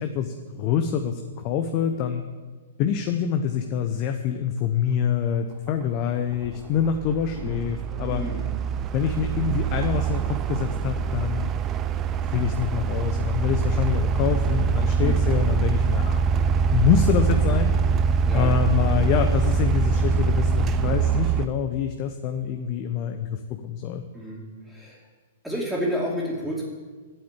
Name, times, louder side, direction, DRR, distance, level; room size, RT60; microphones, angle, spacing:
voice 1, 0.0-2.2 2.8-8.2 8.9-11.5 12.3-16.2 16.7-17.8 18.3-24.0, left 8 dB, 40° left, 6 dB, 0.7 m, -26 dB
sound 1, 5.7-5.8 6.3-21.5, right 5 dB, 25° right, 0.5 m, -24 dB
voice 2, 8.1-8.4 15.0-15.2 18.2-18.5 24.1-25.0 25.4-26.7, equal, ahead, -8 dB, 2.7 m, -30 dB
9.0 x 7.8 x 8.4 m, 1.4 s
figure-of-eight pair, 110°, 0 cm